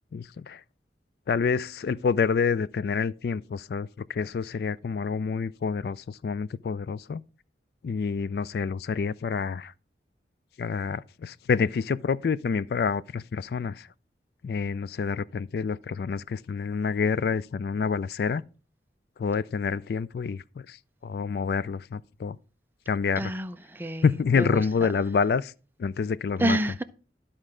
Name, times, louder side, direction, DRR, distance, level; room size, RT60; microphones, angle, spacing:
voice 1, 0.1-0.6 1.3-7.2 7.8-9.7 10.6-13.9 14.4-18.4 19.2-22.4 22.9-23.3 24.0-25.5 25.8-26.6, left 5 dB, 60° left, 0.3 m, -28 dB
voice 2, 23.2-24.0 24.3-24.6 26.4-26.8, right 1 dB, 10° right, 0.5 m, -28 dB
12.5 x 4.3 x 4.9 m
head